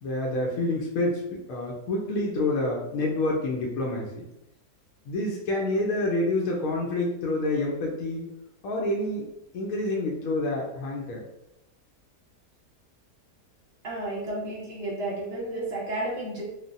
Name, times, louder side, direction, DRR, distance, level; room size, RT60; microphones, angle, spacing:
voice 1, 0.0-4.3 5.1-8.3 8.6-9.3 9.5-11.2, left 2 dB, 70° left, -2 dB, 0.9 m, -28 dB
voice 2, 13.8-16.4, right 1 dB, 45° right, -5 dB, 1.0 m, -32 dB
3.2 x 2.2 x 2.5 m, 0.85 s
omnidirectional pair, 1.8 m